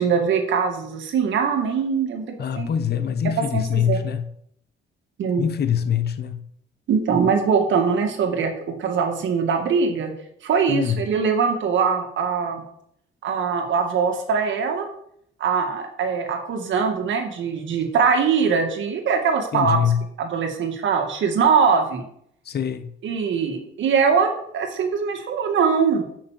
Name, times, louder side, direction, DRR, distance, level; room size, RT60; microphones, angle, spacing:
voice 1, 0.0-2.3 2.6-2.7 3.5-4.0 5.2-5.4 6.9-10.1 10.4-12.6 13.2-14.9 15.4-19.8 20.2-22.0 23.0-26.1, right 6 dB, 70° right, 1.9 m, -22 dB
voice 2, 2.4-4.3 5.4-6.5 10.7-11.0 19.5-20.0 22.4-22.9, left 8 dB, 55° left, 1.0 m, -24 dB
6.9 x 5.9 x 7.4 m
cardioid pair, 90°, 20 cm